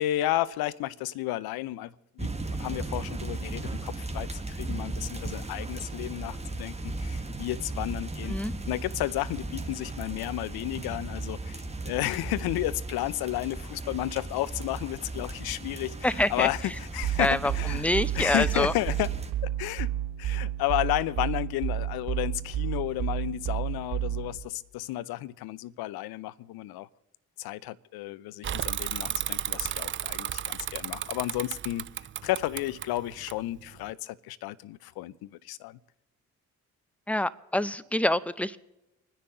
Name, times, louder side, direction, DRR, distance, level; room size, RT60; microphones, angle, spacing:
voice 1, 0.0-2.3 2.6-8.4 8.7-17.9 18.1-19.2 19.4-19.9 20.2-26.9 27.4-31.9 32.2-35.8, left 15 dB, 65° left, 0.7 m, -32 dB
sound 1, 2.2-19.3, right 2 dB, 15° right, 1.7 m, -36 dB
voice 2, 16.0-16.5 17.2-18.7 37.1-38.6, left 1 dB, 5° left, 0.7 m, -26 dB
sound 2, 17.0-24.4, right 12 dB, 55° right, 3.1 m, -31 dB
Bicycle / Mechanisms, 28.4-33.9, right 10 dB, 30° right, 0.4 m, -34 dB
25.5 x 10.0 x 3.9 m
hypercardioid pair, 45°, 40 cm